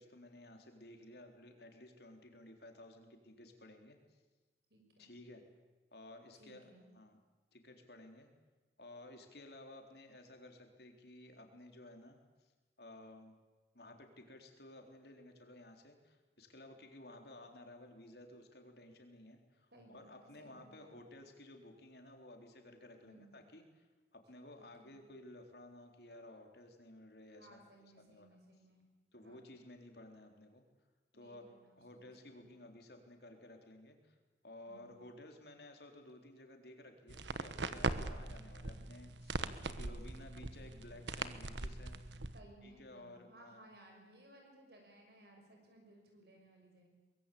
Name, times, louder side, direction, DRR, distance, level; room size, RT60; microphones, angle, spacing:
voice 1, 0.0-4.2 5.0-5.4 5.9-6.6 6.9-7.2 7.5-8.3 8.8-12.5 12.8-13.4 13.7-23.9 24.1-27.7 28.0-28.3 29.1-30.6 31.1-31.5 31.8-34.2 34.4-42.0 42.6-43.6, left 1 dB, 60° left, 4 dB, 3.8 m, -55 dB
voice 2, 4.7-5.2 6.3-6.9 19.7-21.1 23.0-23.4 24.4-25.0 27.4-28.9 29.2-29.4 31.1-32.5 34.7-35.0 42.3-46.9, right 1 dB, 60° right, 2 dB, 6.4 m, -62 dB
sound 1, 37.1-42.4, right 3 dB, 85° right, 1.3 m, -41 dB
23.5 x 22.0 x 8.6 m, 1.2 s
head